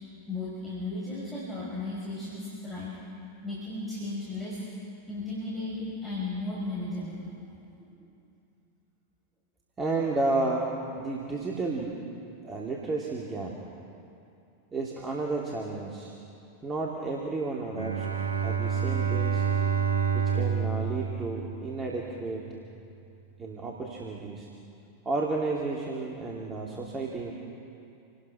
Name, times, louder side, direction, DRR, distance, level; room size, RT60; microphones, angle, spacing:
voice 1, 0.3-3.0 3.4-4.6 5.1-7.2, left 2 dB, 5° left, -9 dB, 6.4 m, -35 dB
voice 2, 9.8-10.7 11.0-12.0 12.4-13.6 14.7-16.1 16.6-18.1 18.4-19.5 20.1-22.5 23.4-24.5 25.0-27.3, right 3 dB, 20° right, -2 dB, 2.7 m, -32 dB
Bowed string instrument, 17.7-22.1, right 6 dB, 75° right, 1.3 m, -28 dB
28.0 x 19.0 x 5.9 m, 2.7 s
figure-of-eight pair, 90°, 0 cm